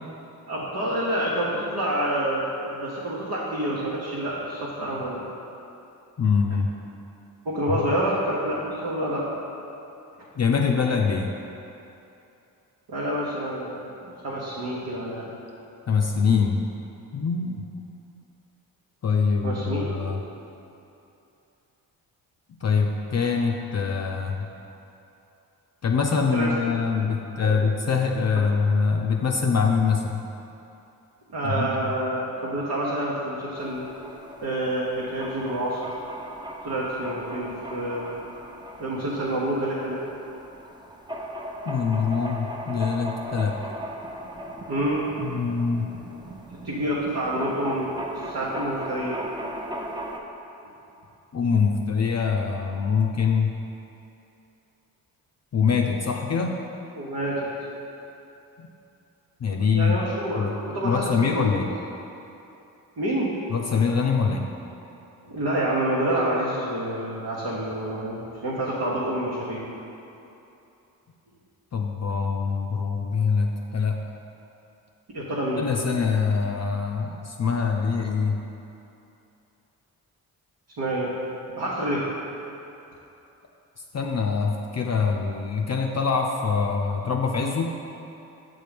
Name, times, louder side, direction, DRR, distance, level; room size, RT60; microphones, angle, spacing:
voice 1, 0.5-5.2 7.4-9.2 12.9-15.3 19.4-19.9 26.3-26.5 27.4-27.6 31.3-33.8 34.4-35.8 36.6-38.1 38.8-40.0 44.7-45.1 46.6-47.9 48.2-49.2 56.9-57.4 59.6-61.6 63.0-63.3 65.2-69.6 75.1-75.6 80.8-81.2 81.6-82.1, right 1 dB, 60° right, -7 dB, 1.2 m, -28 dB
voice 2, 6.2-6.7 7.7-7.8 10.4-11.3 15.9-16.7 17.1-17.6 19.0-20.2 22.6-24.5 25.8-30.2 31.4-31.9 41.6-43.6 45.2-45.9 51.3-53.5 55.5-56.6 58.6-58.7 59.4-60.0 60.4-60.5 60.8-61.7 63.5-64.4 71.7-74.0 75.6-78.4 83.9-87.8, left 5 dB, 40° left, 1 dB, 0.5 m, -24 dB
sound 1, 33.6-50.2, right 1 dB, 10° right, 0.7 m, -38 dB
6.8 x 3.7 x 5.1 m, 2.9 s
supercardioid pair, 45°, 41 cm